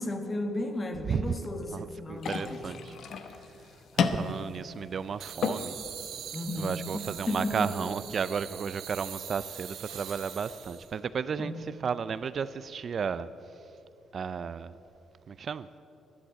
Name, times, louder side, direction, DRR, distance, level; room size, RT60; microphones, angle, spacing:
voice 1, 0.0-2.8 6.3-7.9 11.4-11.5, left 1 dB, 30° left, 1.6 m, -34 dB
voice 2, 1.7-2.8 3.9-5.8 6.6-11.5 11.8-13.3 14.1-14.8 15.3-15.7, right 6 dB, 50° right, 0.4 m, -33 dB
sound 1, 2.2-10.2, left 6 dB, 65° left, 0.9 m, -36 dB
sound 2, 5.2-11.0, right 9 dB, 75° right, 1.2 m, -42 dB
12.0 x 11.5 x 8.7 m
cardioid pair, 90°, 0 cm